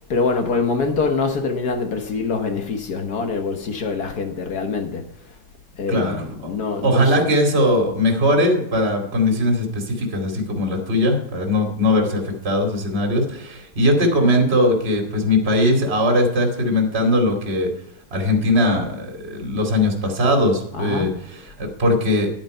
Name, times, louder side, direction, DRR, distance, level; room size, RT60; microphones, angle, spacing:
voice 1, 0.1-5.0 5.8-7.2 8.2-8.5 20.7-21.2, left 4 dB, 50° left, 1.6 m, -24 dB
voice 2, 5.9-6.5 6.8-17.7 18.1-22.3, left 1 dB, 30° right, 2.7 m, -20 dB
11.5 x 8.9 x 5.4 m
omnidirectional pair, 2.4 m